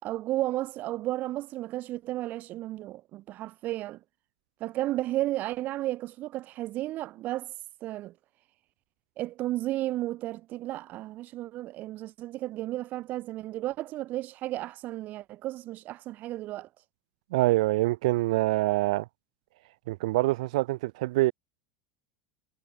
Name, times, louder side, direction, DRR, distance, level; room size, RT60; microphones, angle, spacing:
voice 1, 0.0-4.0 4.6-7.5 7.8-8.1 9.2-16.7, right 15 dB, 50° right, 3.2 m, -33 dB
voice 2, 17.3-19.0 19.9-21.3, right 19 dB, 70° right, 1.3 m, -25 dB
hypercardioid pair, 95°, 4 cm